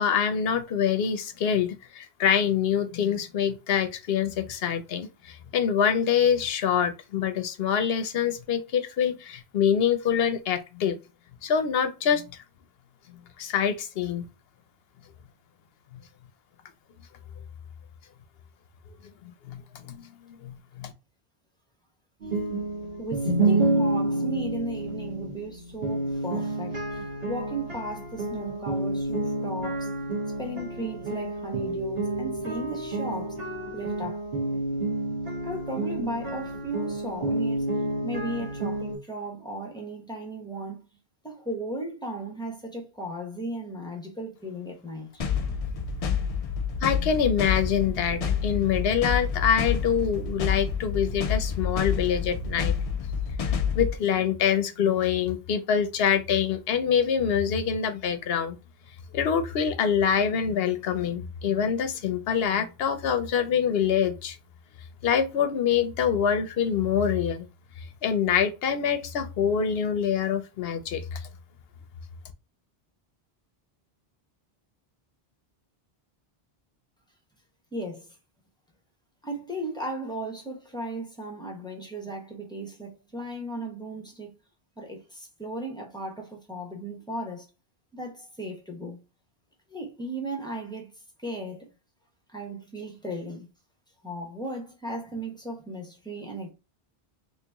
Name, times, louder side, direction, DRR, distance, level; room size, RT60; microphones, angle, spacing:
voice 1, 0.0-11.0 11.4-12.4 13.1-14.3 19.2-20.9 46.8-52.7 53.4-58.6 59.1-64.4 65.0-67.5 67.8-71.2, left 7 dB, 75° left, 0.8 m, -25 dB
sound 1, 22.2-39.0, right 2 dB, 70° right, 1.4 m, -29 dB
voice 2, 23.0-29.9 30.4-33.4 33.7-34.2 35.4-37.7 38.0-40.9 41.2-45.2 77.7-78.2 79.2-84.4 84.8-87.5 87.9-89.0 89.7-90.9 91.2-91.7 92.3-93.5 94.0-96.5, right 1 dB, 5° left, 0.9 m, -36 dB
sound 2, 45.2-54.0, left 6 dB, 55° left, 0.4 m, -28 dB
3.0 x 2.9 x 3.4 m
omnidirectional pair, 1.0 m